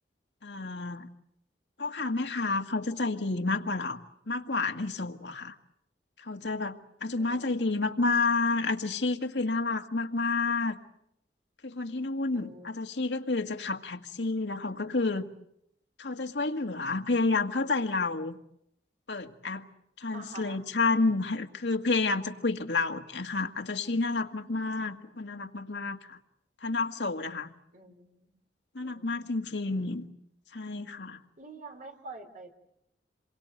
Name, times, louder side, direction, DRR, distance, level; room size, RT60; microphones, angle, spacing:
voice 1, 0.4-1.1 1.8-4.0 4.3-5.5 6.2-10.8 11.6-15.3 16.0-18.4 19.1-19.7 20.0-26.2 26.6-27.5 28.8-30.1 30.5-31.2, left 3 dB, 80° left, 6 dB, 1.8 m, -30 dB
voice 2, 7.2-7.6 12.3-13.2 20.1-20.6 27.7-28.3 28.8-29.6 31.4-32.5, right 3 dB, 50° right, 5 dB, 3.7 m, -48 dB
28.0 x 23.0 x 7.8 m, 0.76 s
head